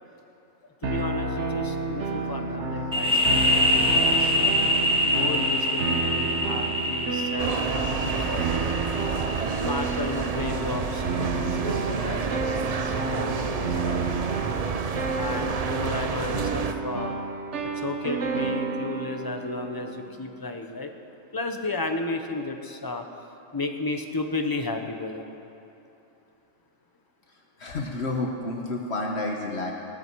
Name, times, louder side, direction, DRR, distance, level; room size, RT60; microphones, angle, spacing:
voice 1, 0.8-4.6 5.0-8.6 9.5-14.4 15.1-17.1 17.8-20.9 21.3-23.0 23.5-25.3, left 3 dB, 20° left, 5 dB, 0.9 m, -33 dB
sound 1, 0.8-20.1, right 3 dB, 65° right, 1.3 m, -31 dB
sound 2, 2.9-10.4, left 1 dB, 5° right, 1.1 m, -25 dB
sound 3, 7.4-16.7, right 5 dB, 45° right, 0.5 m, -29 dB
voice 2, 27.6-29.7, left 2 dB, 60° left, 0 dB, 1.4 m, -30 dB
18.5 x 14.0 x 4.7 m, 2.8 s
omnidirectional pair, 1.3 m